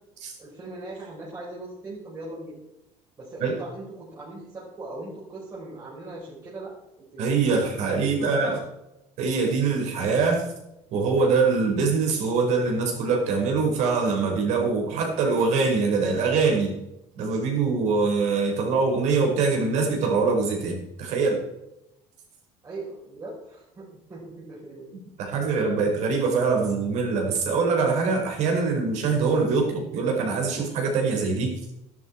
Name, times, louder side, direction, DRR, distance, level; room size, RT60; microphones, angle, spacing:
voice 1, 0.4-2.6 3.2-7.6 8.0-8.6 22.6-24.9, right 2 dB, 25° right, -6 dB, 4.9 m, -39 dB
voice 2, 7.2-8.6 9.2-10.5 10.9-16.8 17.1-21.5 25.2-31.6, right 4 dB, 60° right, 2 dB, 5.2 m, -23 dB
13.0 x 12.0 x 4.7 m, 0.87 s
cardioid pair, 135°, 13 cm